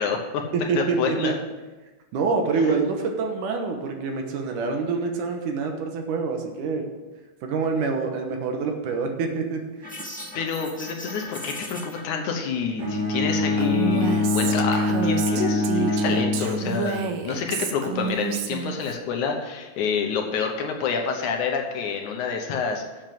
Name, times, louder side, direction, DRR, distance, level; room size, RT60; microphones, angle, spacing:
voice 1, 0.0-0.4 0.8-1.4 10.4-22.8, left 6 dB, 70° left, 3 dB, 2.3 m, -28 dB
voice 2, 0.5-1.3 2.1-6.9 7.4-10.0, right 4 dB, 75° right, 3 dB, 2.6 m, -26 dB
sound 1, 9.8-12.0, equal, 5° left, 0.8 m, -38 dB
Bowed string instrument, 12.8-17.0, left 2 dB, 45° right, 1.4 m, -24 dB
Female speech woman speaking, 13.6-19.0, right 6 dB, 90° right, 2.5 m, -29 dB
7.5 x 7.2 x 7.5 m, 1.2 s
omnidirectional pair, 3.8 m